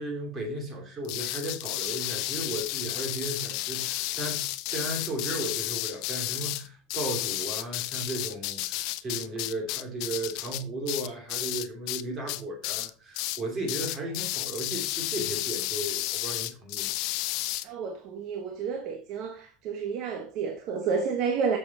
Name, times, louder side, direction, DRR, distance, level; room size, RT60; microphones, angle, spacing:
voice 1, 0.0-4.4 4.7-16.9, right 2 dB, 25° right, 3.0 m, -35 dB
sound 1, 1.0-12.0 12.3-12.9 13.1-13.4 13.7-17.6, left 17 dB, 60° left, 0.6 m, -32 dB
voice 2, 17.6-21.6, right 5 dB, 50° right, 1.2 m, -30 dB
6.9 x 6.3 x 4.2 m
supercardioid pair, 140°, 0 cm